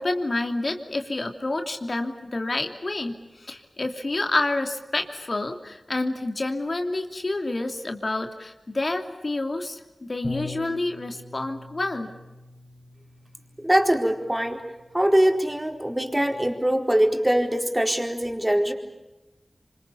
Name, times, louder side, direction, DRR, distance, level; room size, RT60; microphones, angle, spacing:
voice 1, 0.0-12.1, left 2 dB, 55° left, 5 dB, 2.9 m, -28 dB
Bass guitar, 10.2-16.5, left 2 dB, 40° left, 3.8 m, -43 dB
voice 2, 13.6-14.6 14.9-18.7, right 1 dB, 15° right, 3 dB, 4.4 m, -22 dB
26.5 x 26.0 x 7.1 m, 1.1 s
cardioid pair, 45°, 0 cm